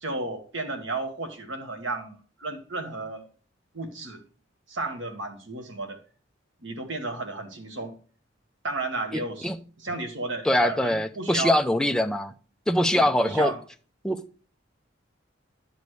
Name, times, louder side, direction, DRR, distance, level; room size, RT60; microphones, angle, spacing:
voice 1, 0.0-3.2 3.7-4.2 4.7-6.0 6.6-7.9 8.6-9.5 9.8-11.9 12.9-13.6, right 3 dB, 75° right, 1.6 m, -33 dB
voice 2, 10.4-12.3 12.7-13.5 14.0-14.2, left 1 dB, 5° left, 0.5 m, -23 dB
10.5 x 6.9 x 3.2 m
head